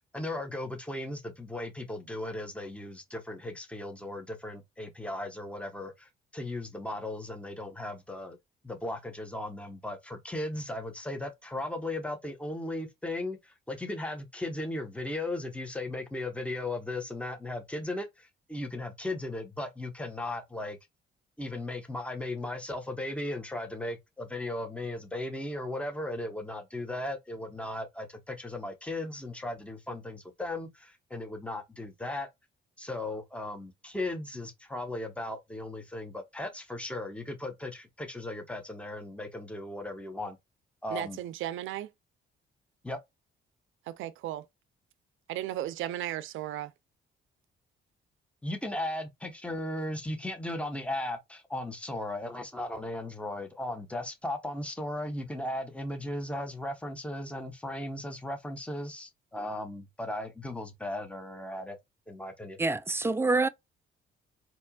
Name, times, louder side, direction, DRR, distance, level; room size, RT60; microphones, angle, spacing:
voice 1, 0.1-8.4 8.6-18.1 18.5-20.8 21.4-30.7 31.1-32.3 32.8-40.4 40.8-41.2 42.8-43.0 48.4-61.8 62.1-62.6, left 1 dB, 5° left, 1.1 m, -36 dB
voice 2, 40.9-41.9 43.9-44.4 45.3-46.7, right 13 dB, 80° right, 0.5 m, -35 dB
voice 3, 62.6-63.5, right 3 dB, 10° right, 0.4 m, -26 dB
4.3 x 2.9 x 2.3 m
cardioid pair, 90°, 20 cm